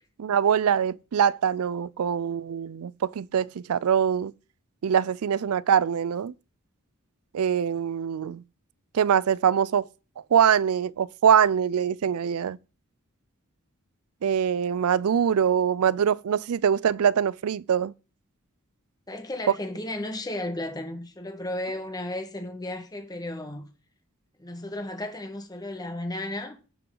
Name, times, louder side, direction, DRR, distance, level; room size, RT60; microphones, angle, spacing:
voice 1, 0.2-4.3 4.8-6.3 7.3-8.4 8.9-9.9 10.3-12.6 14.2-17.9, right 8 dB, 80° right, 0.4 m, -23 dB
voice 2, 19.1-23.7 24.4-26.6, left 1 dB, 20° left, 1.6 m, -34 dB
16.5 x 5.9 x 3.9 m
head